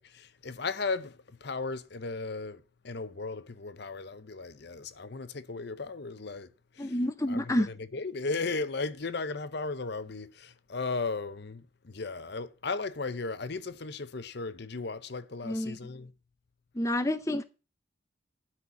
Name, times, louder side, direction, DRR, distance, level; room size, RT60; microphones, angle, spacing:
voice 1, 0.0-6.5 6.7-6.9 7.3-7.5 7.9-16.1, left 3 dB, 55° left, 0.7 m, -36 dB
voice 2, 6.8-7.7 15.4-15.8 16.7-17.4, left 1 dB, 15° left, 0.6 m, -29 dB
12.5 x 4.3 x 8.3 m
head